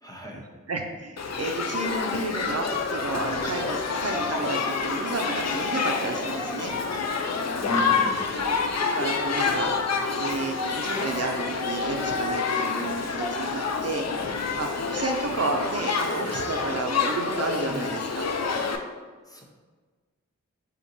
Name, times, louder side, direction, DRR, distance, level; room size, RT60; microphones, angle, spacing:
voice 1, 0.0-0.5 7.6-8.3 17.6-17.9 19.2-19.4, equal, 10° left, -1 dB, 0.8 m, -35 dB
voice 2, 0.7-2.7 2.9-6.7 8.4-8.5 8.8-9.7 10.2-14.1 14.6-18.3, right 3 dB, 55° right, 2 dB, 0.5 m, -31 dB
Shout / Human group actions, 1.2-18.8, left 5 dB, 60° left, 0.5 m, -28 dB
sound 1, 4.1-5.4 5.7-6.8 9.5-9.8 13.2-16.7 17.3-17.9, equal, 10° right, 1.2 m, -40 dB
5.0 x 2.8 x 2.6 m, 1.4 s
wide cardioid pair, 45°, 31 cm